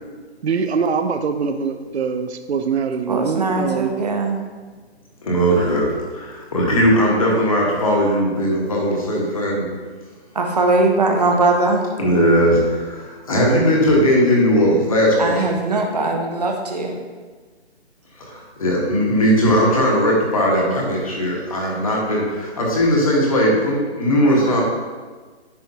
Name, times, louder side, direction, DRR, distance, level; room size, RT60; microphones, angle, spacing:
voice 1, 0.4-3.9, right 5 dB, 70° right, 8 dB, 0.6 m, -23 dB
voice 2, 3.1-4.4 10.3-11.9 15.2-16.9, right 2 dB, 35° right, 2 dB, 0.8 m, -20 dB
voice 3, 5.2-9.6 12.0-15.4 18.2-24.6, equal, 30° left, -2 dB, 1.3 m, -18 dB
10.5 x 4.6 x 2.8 m, 1.4 s
hypercardioid pair, 170°, 33 cm